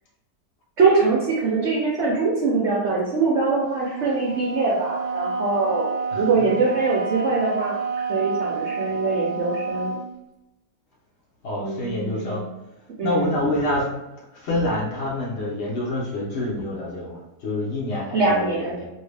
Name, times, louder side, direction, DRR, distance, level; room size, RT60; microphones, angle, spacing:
voice 1, 0.8-5.9 6.2-7.8 8.1-9.9 11.6-12.5 13.0-13.4 18.1-18.8, right 4 dB, 65° right, -4 dB, 0.7 m, -23 dB
Wind instrument woodwind instrument, 3.8-10.1, right 4 dB, 85° right, 1.2 m, -29 dB
voice 2, 6.1-6.5 11.4-12.4 13.0-13.8 14.3-18.8, left 1 dB, 55° left, -5 dB, 0.8 m, -27 dB
2.8 x 2.7 x 3.2 m, 0.96 s
omnidirectional pair, 1.8 m